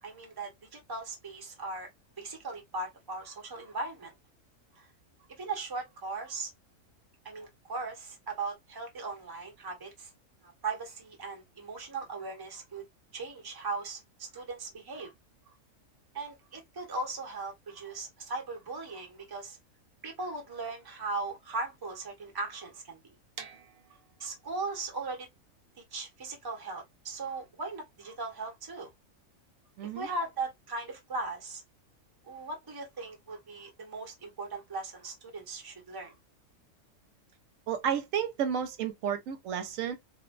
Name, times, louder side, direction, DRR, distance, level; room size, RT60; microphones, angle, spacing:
voice 1, 0.0-1.9 2.2-4.1 4.7-4.9 5.3-6.5 7.2-10.1 10.4-12.8 13.1-15.1 16.1-19.6 20.0-23.1 24.2-25.3 25.9-28.9 29.9-31.6 32.2-36.1, right 3 dB, 20° right, 0.7 m, -38 dB
sound 1, 23.4-29.1, right 6 dB, 60° right, 0.7 m, -52 dB
voice 2, 29.8-30.1 37.7-39.9, right 8 dB, 80° right, 0.9 m, -31 dB
2.9 x 2.1 x 2.3 m
omnidirectional pair, 1.4 m